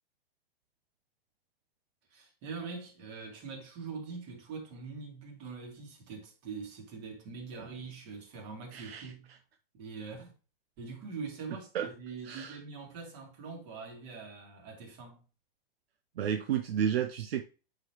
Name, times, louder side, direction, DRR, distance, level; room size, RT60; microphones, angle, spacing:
voice 1, 2.1-9.3 9.7-10.3 10.8-15.2, right 4 dB, 45° right, 2.8 m, -43 dB
voice 2, 8.7-9.1 11.7-11.9 12.2-12.6 16.2-17.4, right 9 dB, 80° right, 0.7 m, -31 dB
8.8 x 3.9 x 3.0 m
hypercardioid pair, 130°, 30 cm